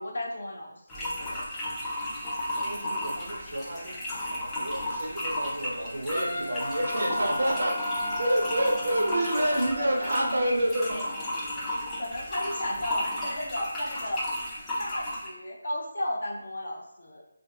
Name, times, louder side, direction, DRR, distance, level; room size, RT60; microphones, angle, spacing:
voice 1, 0.0-1.5 2.9-3.3 7.0-7.3 9.8-10.1 10.4-10.6 10.9-11.0 11.3-11.6 12.0-14.2 14.8-17.2, left 1 dB, 55° left, -1 dB, 0.6 m, -35 dB
sound 1, 0.9-15.3, left 1 dB, 10° left, 0.3 m, -34 dB
voice 2, 2.6-7.8 8.2-11.0, right 1 dB, 65° right, 1 dB, 0.5 m, -29 dB
Wind instrument woodwind instrument, 6.1-10.5, left 1 dB, 80° left, 1.0 m, -36 dB
2.6 x 2.3 x 2.3 m, 0.84 s
figure-of-eight pair, 175°, 0 cm